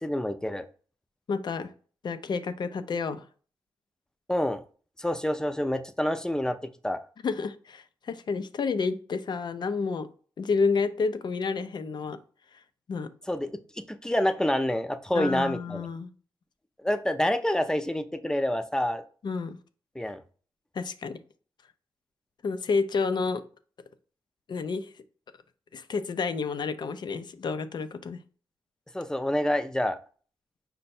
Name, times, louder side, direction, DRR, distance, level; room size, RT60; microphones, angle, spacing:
voice 1, 0.0-0.7 4.3-4.6 5.0-7.0 13.3-15.9 16.8-19.0 19.9-20.2 28.9-30.0, left 1 dB, 5° left, 9 dB, 0.5 m, -28 dB
voice 2, 1.3-1.7 2.0-3.2 7.2-10.1 10.4-12.2 12.9-13.1 15.1-16.1 19.2-19.6 20.8-21.2 22.4-23.4 24.5-24.9 25.7-28.2, left 4 dB, 60° left, 11 dB, 0.5 m, -30 dB
5.2 x 2.2 x 4.2 m, 0.41 s
cardioid pair, 60°, 9 cm